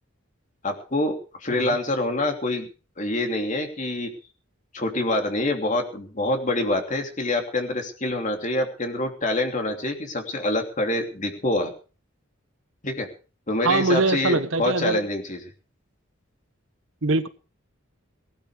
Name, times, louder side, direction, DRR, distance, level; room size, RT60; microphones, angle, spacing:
voice 1, 0.6-2.7 3.0-4.1 4.7-11.7 12.8-13.1 13.5-15.4, left 2 dB, 40° left, 3.0 m, -26 dB
voice 2, 13.6-15.0 17.0-17.3, right 3 dB, 70° right, 1.2 m, -23 dB
19.5 x 12.0 x 5.1 m
head